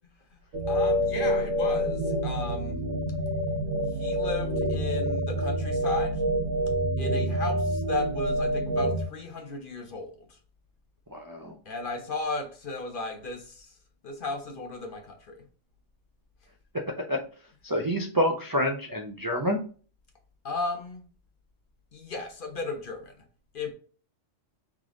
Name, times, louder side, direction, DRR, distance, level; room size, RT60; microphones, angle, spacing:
sound 1, 0.5-9.0, equal, 85° right, 1.2 m, -27 dB
voice 1, 0.7-2.8 3.9-6.2 7.0-10.4 11.7-13.7 14.0-15.4 20.4-21.0 21.9-23.2 23.5-23.7, left 3 dB, 50° left, 0.9 m, -35 dB
voice 2, 11.1-11.6 17.1-17.2 17.6-19.6, equal, 35° right, 0.3 m, -27 dB
3.6 x 3.2 x 3.7 m
omnidirectional pair, 1.3 m